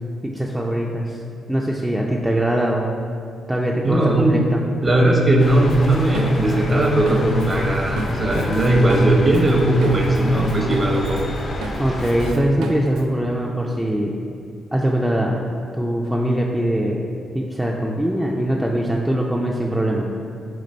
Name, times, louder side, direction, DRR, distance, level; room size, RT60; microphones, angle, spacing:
voice 1, 0.2-1.2 1.5-3.0 3.5-4.6 11.8-14.1 14.7-15.3 15.8-17.0 17.3-20.1, right 1 dB, 5° right, -2 dB, 0.4 m, -22 dB
voice 2, 3.8-4.4 4.8-11.3, right 1 dB, 30° right, 0 dB, 0.8 m, -18 dB
sound 1, 5.4-12.3, left 2 dB, 60° left, 0.5 m, -30 dB
Drum kit, 5.7-10.2 10.5-13.0, right 3 dB, 90° right, 0.3 m, -33 dB
3.9 x 2.9 x 4.2 m, 2.4 s
cardioid pair, 65°, 0 cm